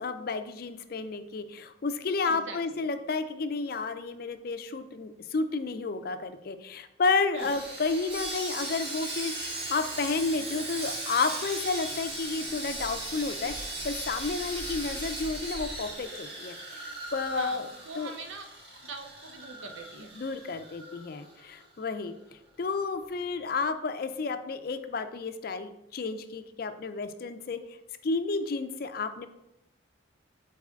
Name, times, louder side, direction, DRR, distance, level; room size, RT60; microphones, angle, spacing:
voice 1, 0.0-17.7 18.0-18.1 20.2-22.1 22.6-27.8 28.0-29.3, left 4 dB, 50° left, 10 dB, 0.4 m, -31 dB
voice 2, 2.2-2.9 7.3-7.5 17.3-18.5 18.8-20.1, right 3 dB, 75° right, 5 dB, 0.8 m, -43 dB
Sawing, 7.4-21.6 21.9-22.1 22.5-22.7, right 2 dB, 55° right, 1.9 m, -38 dB
4.8 x 4.1 x 5.7 m, 0.85 s
head